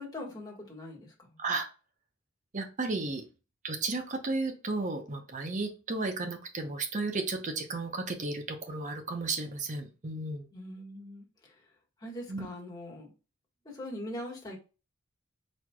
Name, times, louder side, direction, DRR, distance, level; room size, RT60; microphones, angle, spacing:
voice 1, 0.0-1.4 10.5-11.6 12.0-13.1 13.6-14.6, left 1 dB, 20° left, 1.5 m, -42 dB
voice 2, 2.5-3.2 3.6-10.5 12.3-12.5, right 3 dB, 40° right, 0.8 m, -33 dB
4.6 x 4.3 x 2.3 m
head